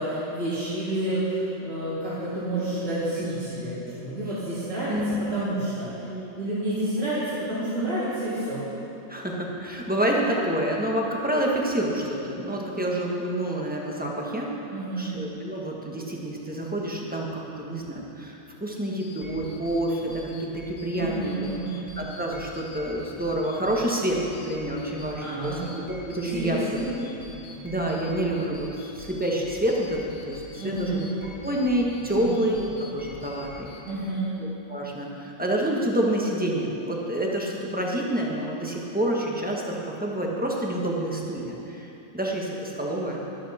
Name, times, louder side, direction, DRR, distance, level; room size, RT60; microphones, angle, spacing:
voice 1, 0.0-5.9 6.4-8.6 14.7-15.1 21.0-21.8 25.2-25.6 26.1-26.9 30.6-31.0 32.2-32.3 33.8-34.3, right 1 dB, 65° right, -12 dB, 3.6 m, -29 dB
voice 2, 4.9-5.2 6.1-6.2 9.1-14.5 15.0-21.5 22.0-26.6 27.6-31.0 31.4-32.6 32.9-33.7 34.4-41.9 42.1-43.2, right 1 dB, 5° right, -2 dB, 1.4 m, -28 dB
sound 1, 19.0-33.9, left 3 dB, 80° left, 2.2 m, -44 dB
13.0 x 12.0 x 4.3 m, 2.9 s
omnidirectional pair, 1.4 m